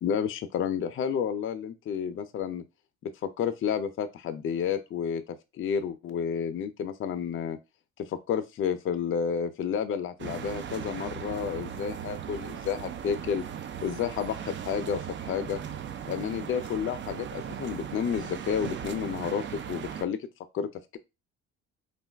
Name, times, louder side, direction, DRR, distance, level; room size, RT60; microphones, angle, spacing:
voice 1, 0.0-2.6 3.0-7.6 8.0-13.4 13.8-15.6 16.1-19.4 19.7-20.2 20.5-21.0, left 7 dB, 45° left, 9 dB, 0.4 m, -31 dB
sound 1, 10.2-20.1, right 8 dB, 40° right, 0.4 m, -38 dB
2.6 x 2.3 x 3.3 m, 0.25 s
cardioid pair, 90°, 30 cm